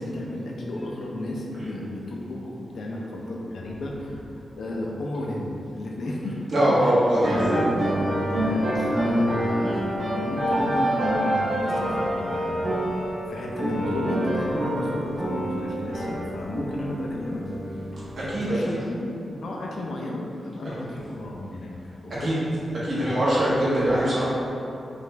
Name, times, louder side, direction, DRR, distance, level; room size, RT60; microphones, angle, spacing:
voice 1, 0.0-6.4 6.8-7.0 8.3-12.6 13.3-17.5 18.3-19.0 19.3-21.7 22.0-22.4, left 1 dB, 70° left, -2 dB, 0.6 m, -33 dB
voice 2, 6.5-7.6 17.9-18.7 22.2-22.4 22.8-24.3, right 1 dB, 55° right, -10 dB, 1.5 m, -22 dB
sound 1, 7.1-18.4, right 1 dB, 75° right, 1.2 m, -27 dB
5.0 x 2.5 x 3.3 m, 2.7 s
wide cardioid pair, 130°, 0 cm